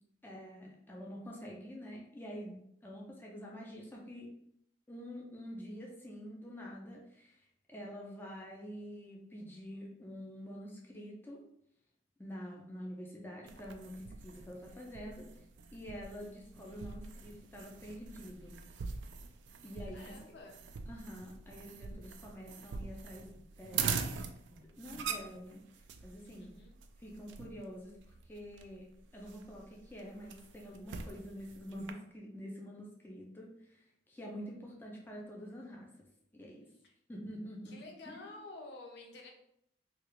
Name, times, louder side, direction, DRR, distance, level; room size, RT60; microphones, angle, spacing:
voice 1, 0.2-2.5 2.8-4.3 4.9-11.4 12.2-15.3 15.7-18.6 19.6-20.1 20.9-23.9 24.5-25.6 26.0-26.5 27.0-28.9 29.1-35.9 36.3-36.7 37.1-37.8 38.1-38.3, equal, 10° left, -2 dB, 0.6 m, -47 dB
sound 1, 13.5-31.9, right 6 dB, 85° right, 0.3 m, -43 dB
voice 2, 19.9-20.6 26.4-26.8 36.8-36.9 37.7-39.3, left 2 dB, 65° left, 2 dB, 0.6 m, -50 dB
3.4 x 2.4 x 3.2 m, 0.73 s
head